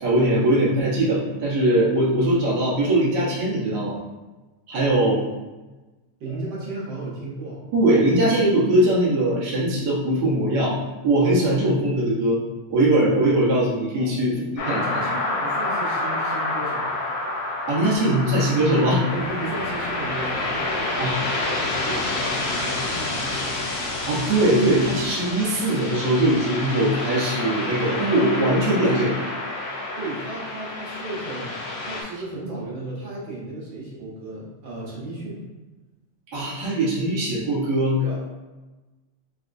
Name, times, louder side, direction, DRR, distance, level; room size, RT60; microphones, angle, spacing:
voice 1, 0.0-4.0 4.7-5.2 7.7-10.8 11.0-12.4 12.7-14.3 14.7-15.0 17.7-19.0 21.0-21.1 23.3-23.4 24.1-29.1 36.3-38.0, right 1 dB, 85° right, -7 dB, 0.8 m, -21 dB
voice 2, 6.2-7.6 13.9-14.1 14.3-16.9 18.9-23.5 30.0-31.5 31.8-35.4 38.0-38.2, right 2 dB, 65° right, -6 dB, 1.2 m, -35 dB
sound 1, 14.6-32.0, left 2 dB, 70° left, 1.4 m, -28 dB
sound 2, 19.0-25.1, left 1 dB, 55° left, 0.9 m, -40 dB
4.0 x 3.5 x 2.6 m, 1.1 s
omnidirectional pair, 3.3 m